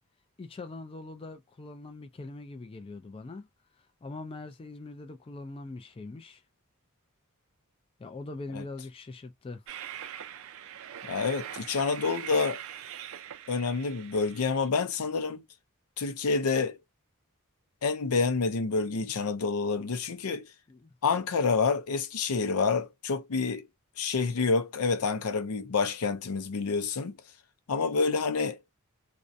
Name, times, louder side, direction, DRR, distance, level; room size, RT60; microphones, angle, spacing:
voice 1, 0.4-3.5 3.8-6.4 8.0-9.6 20.7-20.9, left 2 dB, 25° left, 0.3 m, -42 dB
Train, 9.7-14.7, right 10 dB, 65° right, 0.4 m, -42 dB
voice 2, 11.0-12.6 13.5-15.4 16.0-16.8 17.8-20.5 21.0-23.6 24.0-27.2 27.7-28.6, left 4 dB, 90° left, 0.5 m, -28 dB
2.4 x 2.2 x 2.6 m
head